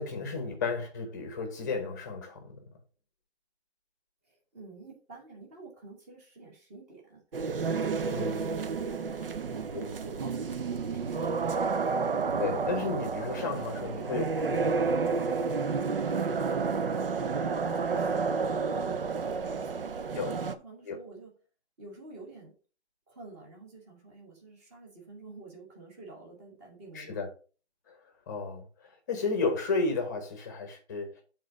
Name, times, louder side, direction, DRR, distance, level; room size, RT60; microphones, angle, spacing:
voice 1, 0.0-2.6 8.1-8.4 9.7-9.9 12.4-14.9 20.2-20.3 20.8-21.0 26.9-27.3 27.9-28.0 28.3-31.2, left 4 dB, 15° left, 1.0 m, -33 dB
voice 2, 4.2-11.7 15.9-16.4 16.7-21.3 21.8-22.6 23.1-27.2, right 3 dB, 15° right, 1.4 m, -49 dB
sound 1, 7.3-20.5, right 5 dB, 55° right, 0.7 m, -30 dB
7.5 x 3.9 x 5.0 m
hypercardioid pair, 165°, 33 cm